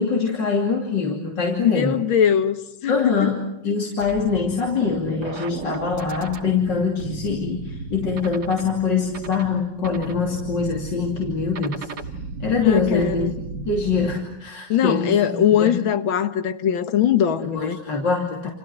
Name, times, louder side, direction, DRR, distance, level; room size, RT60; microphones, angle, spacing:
voice 1, 0.0-2.0 2.9-11.9 12.4-13.3 13.7-15.8 17.4-18.5, left 5 dB, 65° left, 3.6 m, -24 dB
voice 2, 1.6-2.6 2.8-3.3 12.6-13.3 14.7-17.8, left 9 dB, 90° left, 2.1 m, -21 dB
sound 1, 4.0-14.2, right 4 dB, 60° right, 2.1 m, -35 dB
28.5 x 28.5 x 6.1 m
omnidirectional pair, 2.1 m